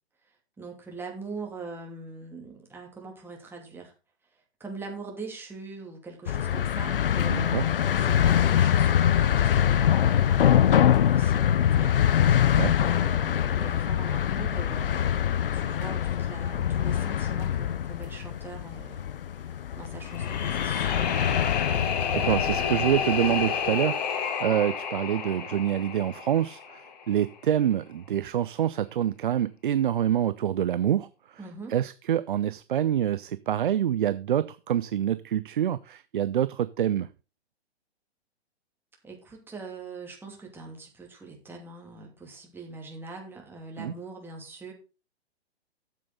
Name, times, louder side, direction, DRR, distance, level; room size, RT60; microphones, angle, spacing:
voice 1, 0.6-3.9 4.6-12.5 12.8-19.1 19.4-21.3 21.6-22.0 31.4-31.8 39.0-44.7, right 3 dB, 5° right, 0 dB, 2.7 m, -42 dB
sound 1, 6.3-23.5, left 10 dB, 55° left, 0.5 m, -24 dB
voice 2, 7.3-7.6 12.6-12.7 22.1-31.4 31.7-37.1 43.8-43.9, right 10 dB, 50° right, 15 dB, 0.6 m, -26 dB
sound 2, 20.0-27.1, left 7 dB, 40° left, 1.6 m, -30 dB
13.0 x 7.6 x 4.0 m, 0.32 s
figure-of-eight pair, 120°, 33 cm